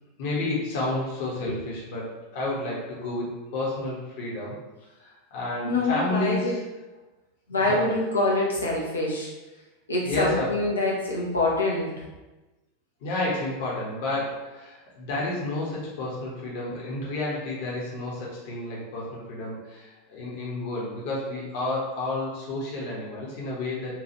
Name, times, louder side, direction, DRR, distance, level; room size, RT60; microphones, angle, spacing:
voice 1, 0.2-4.6 5.0-6.6 7.7-7.9 10.0-10.5 13.0-23.9, left 2 dB, 55° left, -4 dB, 1.0 m, -31 dB
voice 2, 5.6-6.5 7.5-9.3 9.9-11.9, left 2 dB, 80° left, -4 dB, 0.7 m, -25 dB
4.6 x 2.4 x 3.0 m, 1.1 s
figure-of-eight pair, 85°, 0 cm